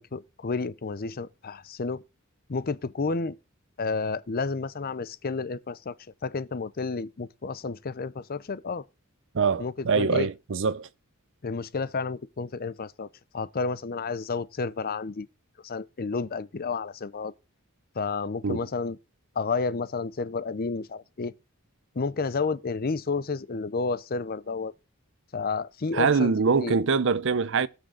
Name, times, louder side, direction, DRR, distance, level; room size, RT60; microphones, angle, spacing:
voice 1, 0.0-2.0 2.5-3.4 3.8-5.9 6.2-8.8 9.6-10.3 11.4-13.1 13.3-15.3 15.6-17.3 18.0-19.0 19.4-21.3 21.9-24.7 25.3-26.3 26.6-26.8, left 4 dB, 45° left, 0.6 m, -31 dB
voice 2, 9.3-10.9 18.4-18.6 25.9-27.7, right 5 dB, 60° right, 0.6 m, -24 dB
18.5 x 6.3 x 3.9 m
head